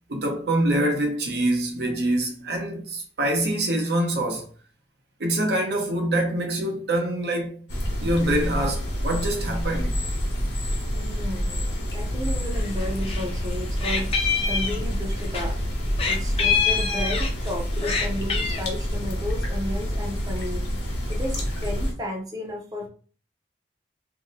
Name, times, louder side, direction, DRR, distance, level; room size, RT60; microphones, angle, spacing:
voice 1, 0.1-4.5 5.2-7.6 8.0-10.0, right 1 dB, 65° right, 0.8 m, -25 dB
sound 1, 7.7-21.9, equal, 75° left, 1.0 m, -28 dB
voice 2, 10.9-14.1 14.5-15.6 16.0-20.7 21.1-22.9, left 1 dB, 20° right, 0.6 m, -33 dB
Meow, 12.6-13.3 13.5-15.5 16.0-17.5 17.8-18.6, left 6 dB, 35° left, 0.4 m, -25 dB
2.7 x 2.1 x 3.9 m
head